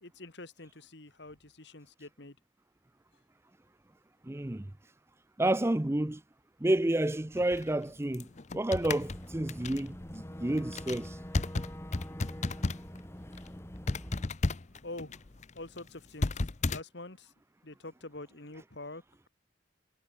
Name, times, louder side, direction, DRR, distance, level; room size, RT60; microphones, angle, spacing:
voice 1, 0.0-2.4 14.8-15.2 15.6-17.3 17.6-19.0, left 2 dB, 60° left, 2.1 m, -46 dB
voice 2, 4.2-4.7 5.4-6.2 6.6-8.3 8.5-11.2, right 1 dB, 15° right, 0.5 m, -30 dB
sound 1, 7.3-13.0 13.3-13.5 13.9-16.8, left 2 dB, 35° left, 0.7 m, -34 dB
Boat Water vehicle / Engine, 9.0-14.3, equal, 15° left, 2.4 m, -44 dB
head